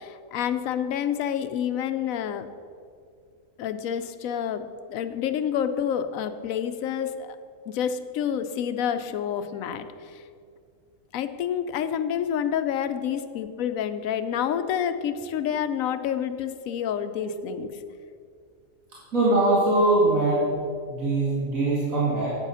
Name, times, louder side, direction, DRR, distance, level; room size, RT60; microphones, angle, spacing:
voice 1, 0.0-2.5 3.6-4.6 4.9-7.4 7.7-10.2 11.1-17.7, left 9 dB, 85° left, 10 dB, 1.0 m, -28 dB
voice 2, 19.1-20.5 20.9-22.3, right 2 dB, 80° right, -8 dB, 2.6 m, -22 dB
8.5 x 7.3 x 5.5 m, 2.2 s
omnidirectional pair, 1.4 m